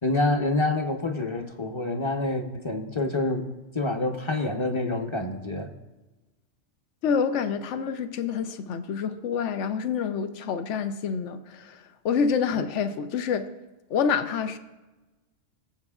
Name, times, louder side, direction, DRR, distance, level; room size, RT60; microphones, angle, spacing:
voice 1, 0.0-3.5 3.7-5.7, left 2 dB, 25° left, 4 dB, 0.9 m, -27 dB
voice 2, 7.0-11.8 12.0-13.5 13.9-14.6, left 6 dB, 70° left, 10 dB, 1.0 m, -27 dB
22.0 x 7.8 x 2.4 m, 1.1 s
omnidirectional pair, 1.3 m